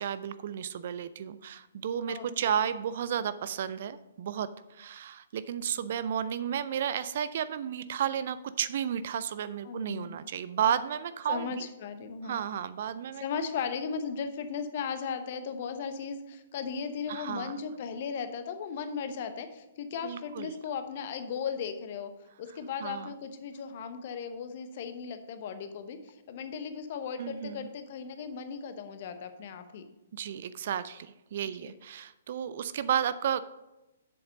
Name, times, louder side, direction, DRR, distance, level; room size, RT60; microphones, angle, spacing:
voice 1, 0.0-11.7 12.2-13.2 17.1-17.5 20.0-20.5 22.8-23.1 27.2-27.7 30.1-33.4, right 9 dB, 45° right, 14 dB, 0.4 m, -32 dB
voice 2, 2.1-2.6 9.6-10.2 11.3-12.4 13.2-22.1 22.4-29.8 31.6-31.7, left 6 dB, 40° left, 9 dB, 0.9 m, -37 dB
7.7 x 7.2 x 5.2 m, 0.97 s
figure-of-eight pair, 120°, 0 cm